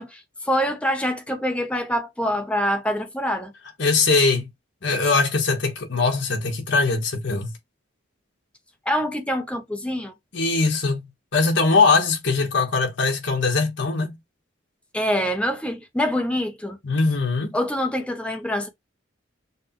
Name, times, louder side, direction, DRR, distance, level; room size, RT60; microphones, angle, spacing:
voice 1, 0.0-3.5 8.9-10.1 14.9-16.8 17.5-18.7, equal, 5° left, 0.7 m, -25 dB
voice 2, 3.8-4.5 4.8-7.5 10.3-14.1 16.8-17.6, left 4 dB, 65° left, 1.4 m, -21 dB
6.4 x 2.3 x 3.0 m
head